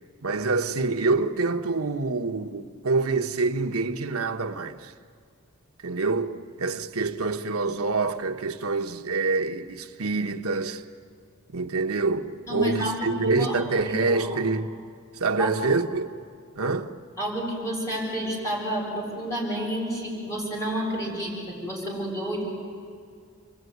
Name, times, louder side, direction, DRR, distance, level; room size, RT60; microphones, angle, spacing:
voice 1, 0.2-4.9 5.8-10.8 11.5-14.7 15.1-16.1 16.5-16.9, right 3 dB, 75° right, 1.2 m, -26 dB
voice 2, 12.5-14.4 15.4-15.5 17.2-22.4, equal, 15° left, 7.0 m, -30 dB
29.0 x 21.5 x 9.5 m
head